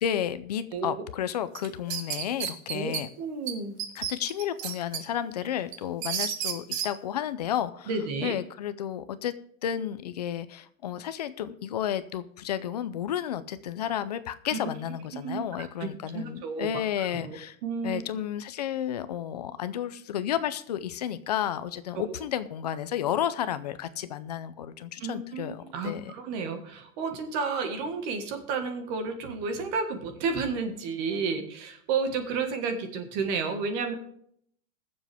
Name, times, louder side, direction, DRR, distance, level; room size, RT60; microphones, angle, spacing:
voice 1, 0.0-3.1 3.9-7.9 8.2-17.6 17.8-26.1, left 10 dB, 30° left, 13 dB, 0.5 m, -32 dB
voice 2, 0.7-1.1 2.7-2.9 3.2-3.8 7.9-8.3 14.5-14.6 15.2-16.7 17.0-17.4 17.6-18.0 25.0-33.9, right 4 dB, 30° right, 7 dB, 1.6 m, -31 dB
sound 1, 1.5-3.0 3.5-3.6 3.8-5.0 5.4-6.9, right 9 dB, 50° right, 1.5 m, -31 dB
21.0 x 7.5 x 3.4 m, 0.66 s
supercardioid pair, 175°, 43 cm